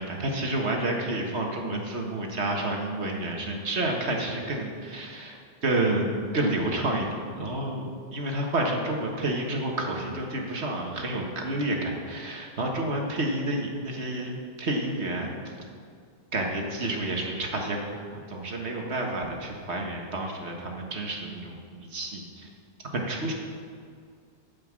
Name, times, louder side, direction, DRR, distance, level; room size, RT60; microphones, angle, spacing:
voice 1, 0.0-7.1 7.4-15.4 16.3-22.5 22.9-23.3, right 1 dB, 65° right, 1 dB, 1.8 m, -30 dB
13.5 x 5.4 x 7.5 m, 2.2 s
omnidirectional pair, 1.2 m